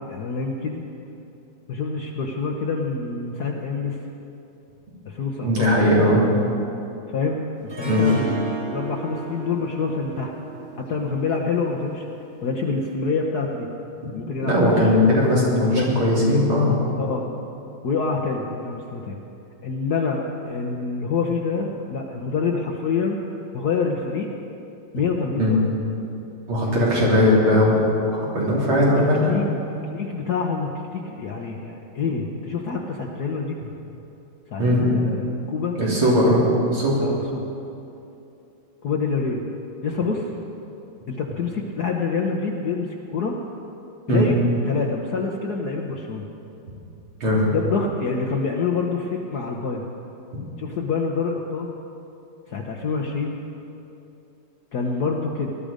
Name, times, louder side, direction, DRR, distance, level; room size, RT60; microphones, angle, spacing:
voice 1, 0.1-0.8 1.7-4.0 5.0-6.2 7.1-10.3 10.7-12.1 12.4-13.7 14.1-14.9 15.6-15.9 17.0-17.3 17.8-19.2 19.6-23.2 23.5-24.3 24.9-25.7 26.6-27.4 28.7-29.6 29.9-33.6 34.5-36.3 37.0-37.5 38.8-39.4 39.8-40.3 41.1-43.4 44.1-44.4 44.6-46.3 47.5-49.9 50.6-51.7 52.5-53.4 54.7-55.5, left 4 dB, 55° left, 0 dB, 1.3 m, -27 dB
voice 2, 5.4-6.2 7.9-8.0 14.4-16.8 25.4-25.5 26.5-27.8 28.1-29.4 34.6-34.9 35.8-36.5 36.7-37.0 44.1-44.2 47.2-47.5, left 1 dB, 75° right, -5 dB, 4.3 m, -19 dB
Harp, 7.7-12.8, right 4 dB, 40° right, 0.7 m, -35 dB
19.5 x 12.5 x 5.1 m, 2.8 s
omnidirectional pair, 2.3 m